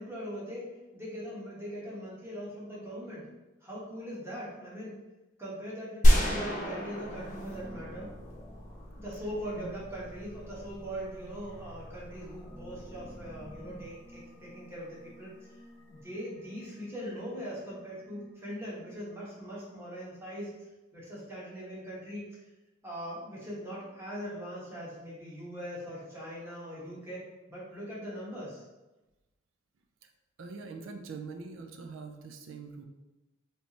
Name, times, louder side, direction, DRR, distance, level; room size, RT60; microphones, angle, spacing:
voice 1, 0.0-3.2 3.6-4.9 5.4-8.1 9.0-15.5 15.9-22.2 22.8-27.2 27.5-28.6, equal, 15° right, -7 dB, 1.1 m, -41 dB
sound 1, 6.0-8.9, equal, 40° left, 0.7 m, -26 dB
sound 2, 7.0-18.9, equal, 5° left, 0.4 m, -49 dB
voice 2, 30.4-32.8, right 4 dB, 70° right, 5 dB, 0.4 m, -43 dB
3.3 x 2.9 x 2.8 m, 1.1 s
head